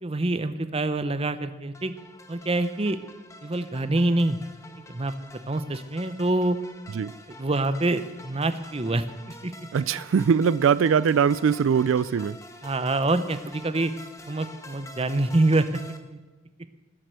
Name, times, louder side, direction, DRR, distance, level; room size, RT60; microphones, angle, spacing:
voice 1, 0.0-1.9 2.3-3.0 3.4-4.4 4.9-5.1 5.5-6.6 7.3-9.5 12.6-13.9 14.3-15.7 16.1-16.2, right 2 dB, 30° right, 12 dB, 0.8 m, -25 dB
sound 1, 1.7-16.0, left 2 dB, 15° left, 1.1 m, -47 dB
voice 2, 9.7-12.4, right 7 dB, 90° right, 18 dB, 0.3 m, -21 dB
19.5 x 7.6 x 6.8 m, 1.2 s
head